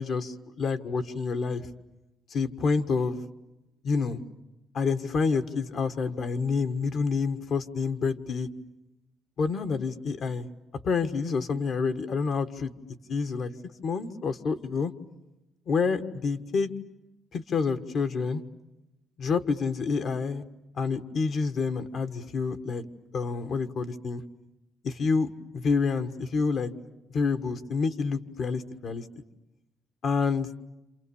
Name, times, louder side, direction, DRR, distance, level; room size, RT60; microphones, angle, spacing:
voice 1, 0.0-1.7 2.3-3.2 3.8-4.3 4.7-8.5 9.4-10.5 10.8-12.7 13.1-13.5 13.8-14.9 15.7-16.7 17.3-18.4 19.2-20.4 20.7-22.8 23.1-24.2 24.8-26.7 27.1-29.0 30.0-30.5, left 5 dB, 60° left, 8 dB, 1.5 m, -28 dB
28.0 x 28.0 x 7.1 m, 1.0 s
cardioid pair, 90°, 0 cm